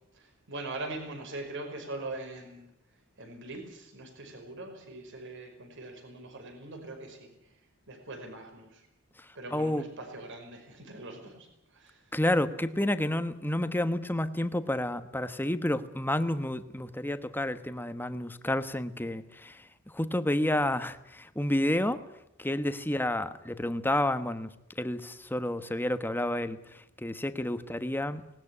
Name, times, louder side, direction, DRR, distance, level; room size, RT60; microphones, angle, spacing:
voice 1, 0.1-2.7 3.2-7.3 7.9-8.8 9.4-11.5 11.7-12.0, right 2 dB, 60° right, 5 dB, 5.4 m, -42 dB
voice 2, 9.5-9.8 12.1-19.6 19.9-22.0 22.4-24.5 24.8-26.6 27.0-28.2, left 1 dB, 10° left, 11 dB, 1.1 m, -30 dB
19.5 x 19.0 x 9.8 m, 0.80 s
head